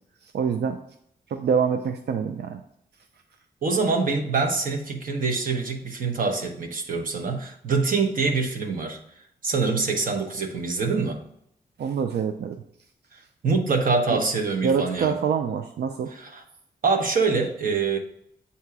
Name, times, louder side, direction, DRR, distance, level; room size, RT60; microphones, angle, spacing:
voice 1, 0.3-0.8 1.3-2.6 11.8-12.6 14.1-14.2 14.6-16.1, right 6 dB, 85° right, 6 dB, 0.4 m, -25 dB
voice 2, 3.6-9.0 9.4-11.2 13.4-15.2 16.1-16.4 16.8-18.0, right 4 dB, 55° right, 4 dB, 1.0 m, -25 dB
8.0 x 2.9 x 4.7 m, 0.71 s
wide cardioid pair, 150°, 17 cm